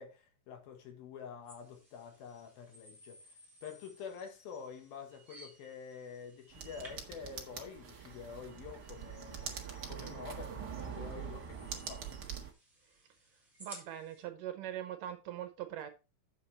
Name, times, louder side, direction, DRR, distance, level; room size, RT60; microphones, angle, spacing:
voice 1, 0.0-3.2 3.6-12.2, left 6 dB, 75° left, 3.5 m, -48 dB
sound 1, 1.5-14.2, right 1 dB, ahead, 3.5 m, -58 dB
sound 2, 6.5-12.5, right 7 dB, 90° right, 0.9 m, -44 dB
voice 2, 13.6-15.9, right 11 dB, 75° right, 2.1 m, -42 dB
8.4 x 7.0 x 4.2 m
omnidirectional pair, 4.4 m